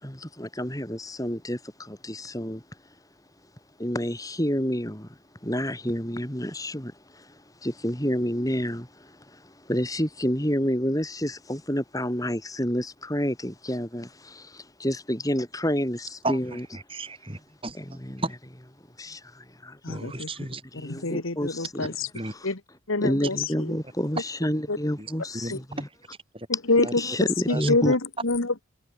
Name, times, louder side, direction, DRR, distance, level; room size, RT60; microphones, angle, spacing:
voice 1, 0.0-2.6 3.8-5.1 5.4-7.3 7.6-16.7 17.7-18.2 19.0-19.8 20.2-20.3 20.7-21.9 22.3-22.5 23.0-25.9 27.0-27.9, equal, 15° left, 7.2 m, -29 dB
voice 2, 16.2-17.8 18.2-18.3 19.9-20.6 22.1-22.3 25.0-25.1 25.4-25.5 26.3-26.5 26.8-26.9 27.5-27.7, right 2 dB, 25° right, 6.8 m, -33 dB
voice 3, 19.8-20.3 20.7-22.1 22.4-22.6 22.9-23.8 24.7-24.8 25.5-25.6 26.5-28.6, left 3 dB, 85° left, 1.9 m, -26 dB
head